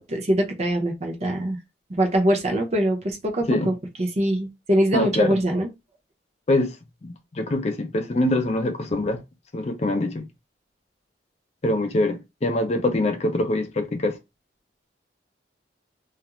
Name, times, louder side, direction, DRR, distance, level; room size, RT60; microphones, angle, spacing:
voice 1, 0.0-1.6 1.9-5.7, right 1 dB, 35° right, 0.7 m, -23 dB
voice 2, 4.9-5.4 6.5-6.7 7.0-9.2 9.5-10.3 11.6-14.2, left 1 dB, 35° left, 0.5 m, -24 dB
2.4 x 2.0 x 2.9 m
head